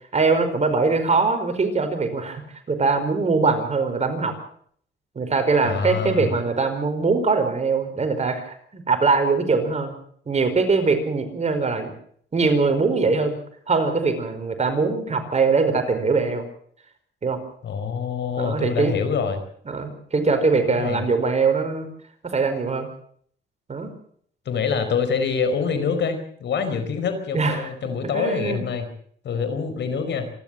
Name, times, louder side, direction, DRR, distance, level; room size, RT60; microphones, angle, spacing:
voice 1, 0.1-2.4 2.7-4.3 5.1-10.0 10.3-11.9 12.3-13.4 13.7-16.4 17.2-17.4 18.4-19.0 19.7-21.9 22.2-22.9 23.7-23.9 27.3-27.7 28.1-28.6, right 4 dB, 35° right, 7 dB, 5.0 m, -22 dB
voice 2, 5.6-6.4 17.6-19.4 20.7-21.0 24.4-28.9 29.2-30.3, left 6 dB, 65° left, 9 dB, 4.7 m, -25 dB
26.5 x 12.5 x 7.8 m, 0.62 s
cardioid pair, 90°, 20 cm